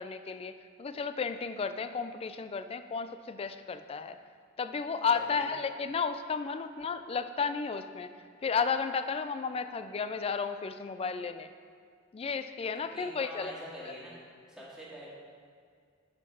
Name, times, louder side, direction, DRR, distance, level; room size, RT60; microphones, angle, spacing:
voice 1, 0.0-4.2 4.6-8.1 8.4-11.5 12.1-13.5 13.8-13.9, left 5 dB, 30° left, 10 dB, 0.3 m, -33 dB
voice 2, 5.1-5.5 12.8-14.1 14.5-15.1, equal, 5° right, -7 dB, 2.0 m, -45 dB
8.1 x 5.7 x 5.3 m, 2.2 s
head